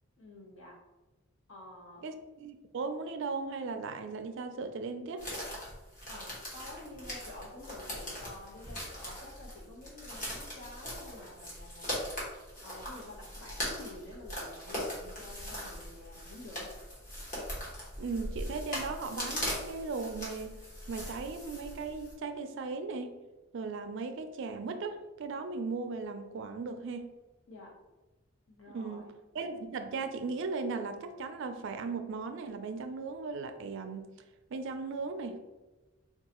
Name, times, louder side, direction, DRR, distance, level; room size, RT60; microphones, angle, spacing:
voice 1, 0.2-0.8 1.5-2.0 6.1-12.1 12.6-16.7 27.5-27.7 28.5-29.1, left 2 dB, 70° left, -2 dB, 1.1 m, -49 dB
voice 2, 2.0-5.3 18.0-20.6 20.9-23.2 23.5-27.1 28.7-34.1 34.5-35.4, right 4 dB, 60° right, 8 dB, 0.4 m, -37 dB
sound 1, 5.2-22.1, equal, 40° left, 1.2 m, -40 dB
4.6 x 2.3 x 2.9 m, 1.1 s
head